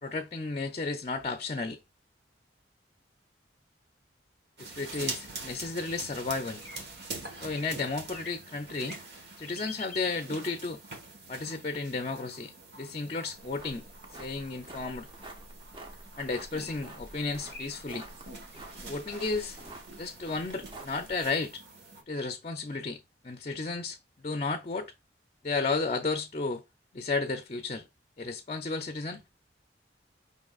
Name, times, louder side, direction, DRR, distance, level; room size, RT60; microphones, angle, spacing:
voice 1, 0.0-1.8 4.6-6.6 7.4-9.0 9.4-10.8 11.3-13.8 14.2-15.1 16.2-18.1 18.9-19.6 20.0-21.6 22.1-23.0 23.2-24.0 24.2-24.9 25.4-26.6 26.9-27.9 28.2-29.2, left 3 dB, 35° left, 0.5 m, -33 dB
sound 1, 4.6-22.0, right 3 dB, 65° right, 1.3 m, -45 dB
sound 2, 6.6-6.8 7.5-7.7 8.1-8.5 8.7-9.1 9.4-10.1 16.5-16.7 17.2-17.3 17.5-17.7 18.5-18.6, left 3 dB, 10° left, 0.9 m, -45 dB
sound 3, 13.4-21.3, right 1 dB, 25° right, 0.7 m, -48 dB
5.3 x 3.7 x 2.4 m
head